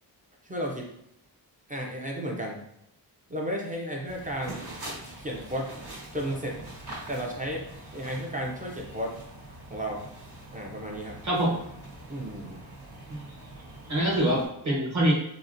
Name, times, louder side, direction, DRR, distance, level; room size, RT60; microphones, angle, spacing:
voice 1, 0.4-0.9 1.7-2.6 3.3-4.7 5.2-5.7 6.1-6.6 7.1-7.7 7.9-9.2 9.7-10.0 10.5-11.2 12.1-12.6, equal, 20° right, -1 dB, 0.4 m, -33 dB
sound 1, 4.1-14.5, right 1 dB, 65° right, 1.2 m, -44 dB
voice 2, 11.2-11.6 13.1-13.2 13.9-15.1, right 1 dB, 45° right, -4 dB, 1.2 m, -25 dB
4.0 x 2.1 x 2.5 m, 0.77 s
wide cardioid pair, 160°, 41 cm